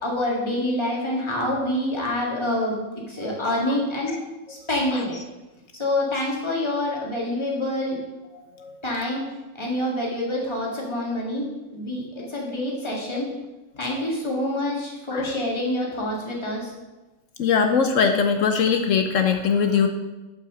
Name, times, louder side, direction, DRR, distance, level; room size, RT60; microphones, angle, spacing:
voice 1, 0.0-2.8 3.1-4.1 4.5-5.2 5.7-8.0 8.8-9.2 9.6-11.5 11.7-13.3 13.8-16.7, left 1 dB, 15° left, -3 dB, 1.8 m, -26 dB
voice 2, 17.4-19.9, left 6 dB, 70° left, 6 dB, 0.7 m, -21 dB
7.3 x 5.6 x 6.1 m, 1.1 s
omnidirectional pair, 2.0 m